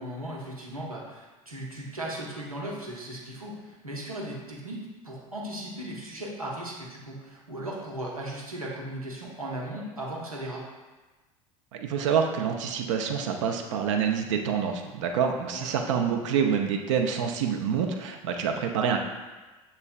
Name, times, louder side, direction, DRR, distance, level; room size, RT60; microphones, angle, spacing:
voice 1, 0.0-10.7 15.5-15.7, right 1 dB, 90° right, -4 dB, 0.9 m, -37 dB
voice 2, 11.7-19.0, right 7 dB, 60° right, 4 dB, 0.6 m, -27 dB
7.0 x 3.3 x 2.3 m, 1.2 s
figure-of-eight pair, 70°, 18 cm